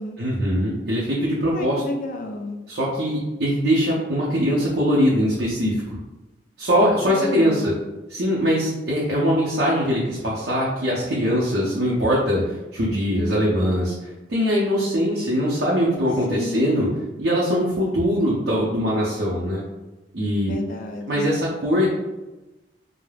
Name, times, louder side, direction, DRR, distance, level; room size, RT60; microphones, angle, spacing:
voice 1, 0.2-1.8 2.7-6.0 6.6-7.7 8.1-12.4 12.7-16.9 17.2-19.6 20.1-20.5 21.1-22.0, equal, 65° right, -6 dB, 0.5 m, -22 dB
voice 2, 1.5-2.6 7.1-7.7 16.3-16.9 20.5-21.3, left 2 dB, 50° left, 4 dB, 0.3 m, -30 dB
2.3 x 2.0 x 3.2 m, 1.1 s
head